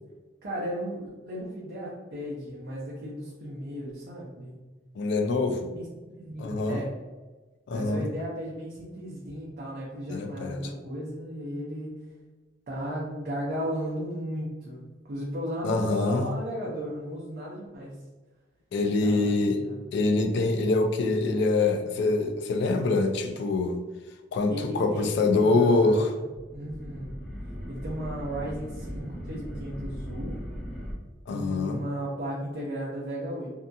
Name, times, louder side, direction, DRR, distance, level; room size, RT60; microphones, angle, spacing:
voice 1, 0.4-4.5 5.6-5.8 6.1-6.9 7.7-12.0 12.7-17.9 18.8-19.3 19.7-19.9 24.5-27.1 27.7-30.4 31.3-33.5, equal, 50° right, -6 dB, 0.6 m, -35 dB
voice 2, 5.0-5.7 6.4-6.8 7.7-8.1 10.1-10.7 15.6-16.3 18.7-19.6 19.9-23.8 24.3-26.1 31.3-31.8, left 3 dB, 65° left, 6 dB, 0.3 m, -25 dB
sound 1, 26.3-30.9, equal, ahead, 0.5 m, -38 dB
2.8 x 2.2 x 2.6 m, 1.2 s
head